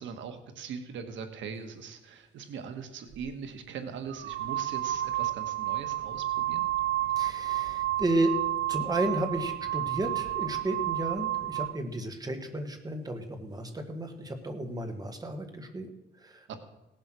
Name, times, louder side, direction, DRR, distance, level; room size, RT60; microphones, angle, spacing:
voice 1, 0.0-6.7 16.5-16.6, right 6 dB, 80° right, 6 dB, 1.6 m, -41 dB
sound 1, 3.1-3.3 4.1-11.8, right 14 dB, 60° right, 0.5 m, -31 dB
voice 2, 7.2-8.4 8.7-16.5, right 1 dB, 20° right, 6 dB, 1.7 m, -33 dB
17.5 x 7.7 x 6.3 m, 0.95 s
cardioid pair, 135°, 19 cm